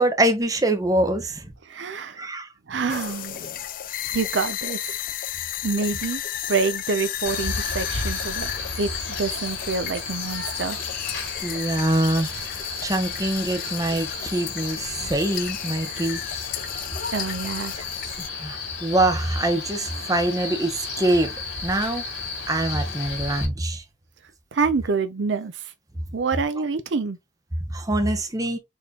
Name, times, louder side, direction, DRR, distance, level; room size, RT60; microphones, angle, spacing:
voice 1, 0.0-1.5 2.2-2.5 11.4-12.3 12.8-16.2 18.2-22.0 22.5-23.8 27.7-28.6, right 1 dB, 20° right, 0.8 m, -24 dB
voice 2, 1.7-2.2 2.7-3.6 4.1-4.8 5.6-6.2 6.5-8.5 8.8-8.9 9.2-10.8 17.1-17.7 24.5-25.7 26.1-27.2, right 4 dB, 65° right, 0.5 m, -26 dB
sound 1, 2.9-18.3, left 11 dB, 45° left, 0.3 m, -34 dB
Male speech man speaking, 7.2-23.4, left 4 dB, 75° left, 2.0 m, -33 dB
4.4 x 3.5 x 2.8 m
head